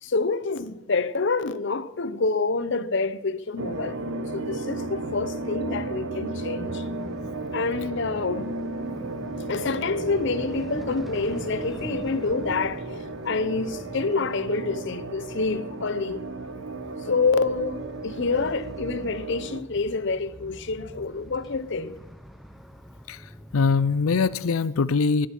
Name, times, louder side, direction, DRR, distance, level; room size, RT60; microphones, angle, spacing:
voice 1, 0.0-6.8 7.5-8.5 9.5-12.8 13.2-16.2 17.0-22.0, left 4 dB, 60° left, 0.8 m, -27 dB
sound 1, 3.6-19.6, right 3 dB, 90° right, 1.2 m, -34 dB
sound 2, 6.6-24.5, equal, ahead, 0.8 m, -44 dB
voice 2, 23.5-25.3, left 4 dB, 90° left, 0.5 m, -22 dB
18.0 x 11.5 x 6.0 m
head